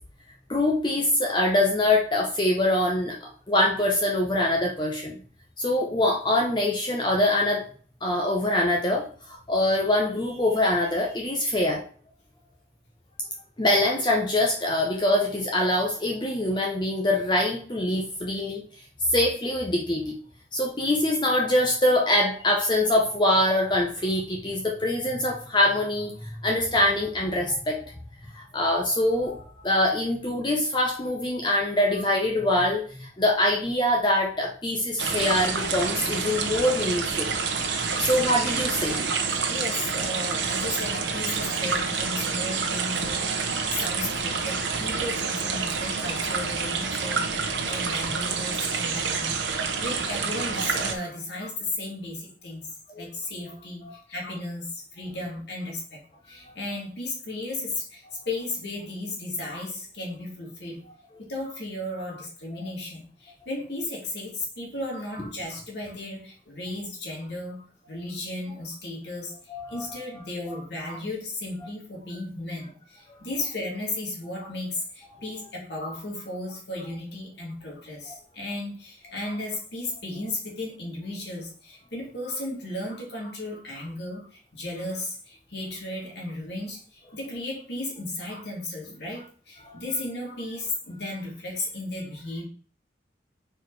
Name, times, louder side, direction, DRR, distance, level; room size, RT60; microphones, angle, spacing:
voice 1, 0.5-5.2 5.6-7.6 8.0-11.8 13.6-18.6 19.1-20.2 20.5-27.8 28.3-37.3 38.0-39.0 52.9-53.1 53.5-53.6 53.8-54.0 69.5-70.2 75.1-75.2 89.6-89.8, left 1 dB, 25° left, 0 dB, 0.8 m, -24 dB
sound 1, 35.0-50.9, right 5 dB, 85° right, 1.0 m, -28 dB
voice 2, 39.3-52.7 52.9-53.8 54.1-60.9 61.2-69.3 69.7-92.4, left 2 dB, 70° left, -2 dB, 2.4 m, -35 dB
4.7 x 4.5 x 4.7 m, 0.43 s
head